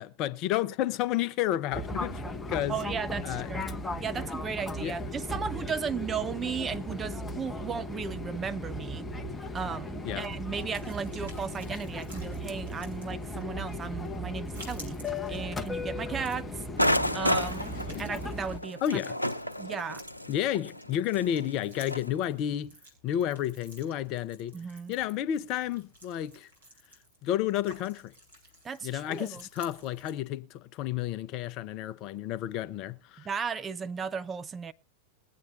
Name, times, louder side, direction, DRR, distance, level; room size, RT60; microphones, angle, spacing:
voice 1, 0.0-2.8 3.2-3.5 4.8-4.9 10.0-10.3 16.1-16.2 17.9-18.1 18.8-19.2 20.3-22.7 23.0-24.6 24.9-26.5 27.2-28.1 28.8-33.3, left 11 dB, 40° left, 0.6 m, -31 dB
Fixed-wing aircraft airplane, 1.7-18.6, left 1 dB, 10° left, 0.8 m, -37 dB
voice 2, 2.7-3.7 4.0-9.1 9.5-15.0 15.3-16.5 17.1-19.0 19.6-20.0 24.5-24.9 28.6-29.4 33.2-34.7, right 6 dB, 20° right, 0.5 m, -35 dB
sound 1, 10.5-30.1, right 1 dB, 75° right, 6.3 m, -54 dB
sound 2, 16.8-22.1, left 1 dB, 90° left, 0.6 m, -31 dB
21.5 x 8.5 x 2.6 m
figure-of-eight pair, 90°, 0 cm